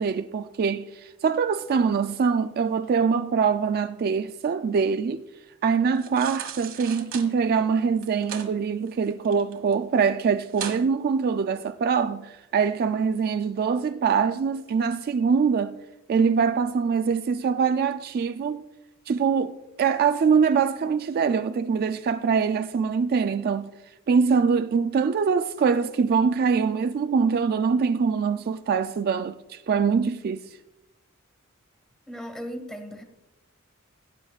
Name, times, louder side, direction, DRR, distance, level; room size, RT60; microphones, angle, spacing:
voice 1, 0.0-5.2 5.6-15.8 16.1-18.6 19.1-23.7 24.1-30.6, right 6 dB, 45° right, 0.3 m, -23 dB
sound 1, 5.9-7.3 8.0-8.5 8.9-9.7 10.1-10.2 10.5-10.8 11.3-11.4, right 7 dB, 65° right, 1.4 m, -36 dB
voice 2, 32.1-33.0, equal, 5° left, 1.5 m, -36 dB
18.0 x 9.4 x 2.4 m
head